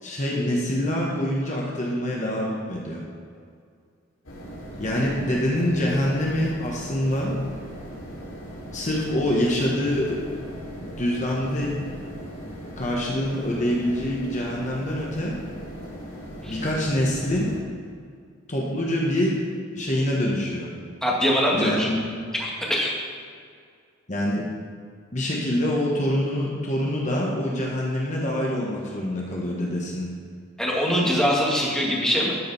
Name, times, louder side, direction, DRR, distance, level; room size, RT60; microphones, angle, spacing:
voice 1, 0.0-3.0 4.8-7.4 8.7-10.2 10.8-11.7 12.8-15.4 16.5-17.5 18.5-19.4 19.7-20.7 21.5-22.0 24.1-24.5 25.1-30.1, left 1 dB, 35° left, -3 dB, 1.3 m, -25 dB
Computer Hum Noise, 4.2-17.6, equal, 85° left, 2.8 m, -39 dB
voice 2, 21.0-21.9 22.4-22.9 30.6-32.4, equal, 5° left, -4 dB, 1.8 m, -23 dB
12.5 x 4.9 x 5.6 m, 2.1 s
head